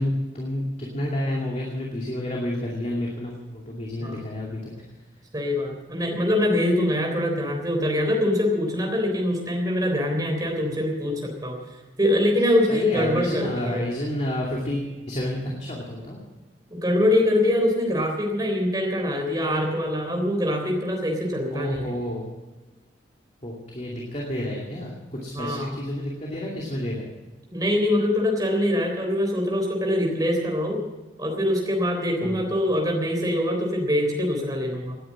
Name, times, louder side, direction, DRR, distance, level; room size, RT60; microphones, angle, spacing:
voice 1, 0.0-4.7 12.7-16.2 21.5-22.2 23.4-27.1 32.2-32.4, left 1 dB, 35° left, -2 dB, 2.5 m, -30 dB
voice 2, 5.3-11.6 12.0-13.8 16.7-21.9 25.3-25.8 27.5-30.8 31.2-35.0, left 1 dB, 20° right, 1 dB, 3.6 m, -24 dB
18.0 x 10.0 x 7.5 m, 1.2 s
head